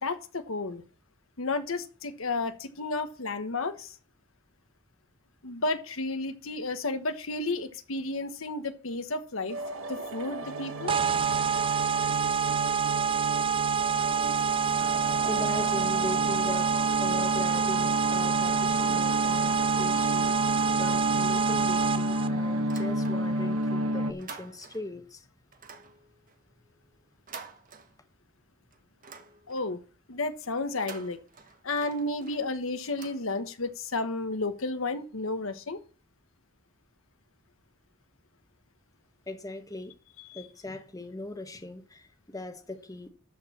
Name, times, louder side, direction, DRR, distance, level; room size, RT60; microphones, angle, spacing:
voice 1, 0.0-0.8 1.4-3.9 5.4-9.6 9.9-11.0 29.5-29.8 30.1-31.2 31.6-35.8 40.3-40.4, left 2 dB, 80° left, 1.2 m, -32 dB
sound 1, 9.5-24.1, equal, 85° right, 1.1 m, -31 dB
sound 2, 10.9-22.3, right 7 dB, 25° right, 0.4 m, -27 dB
voice 2, 15.2-16.7 17.0-20.5 20.8-25.3 39.3-40.0 40.3-43.1, left 2 dB, 15° left, 1.0 m, -39 dB
sound 3, 22.7-23.5 23.8-25.0 25.5-28.4 28.7-29.8 30.6-33.8, right 5 dB, 40° right, 1.2 m, -49 dB
12.5 x 4.5 x 7.3 m
head